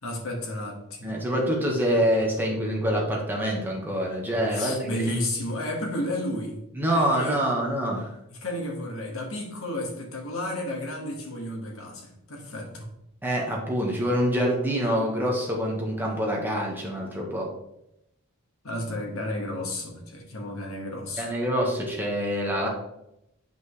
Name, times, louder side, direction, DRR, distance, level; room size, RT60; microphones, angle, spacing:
voice 1, 0.0-1.2 4.5-6.6 6.9-7.4 8.3-12.9 18.6-21.3, left 1 dB, 75° left, 0 dB, 1.8 m, -32 dB
voice 2, 1.0-5.0 6.8-8.1 13.2-17.5 21.2-22.7, equal, 10° right, -2 dB, 1.5 m, -26 dB
9.2 x 5.4 x 3.2 m, 0.83 s
head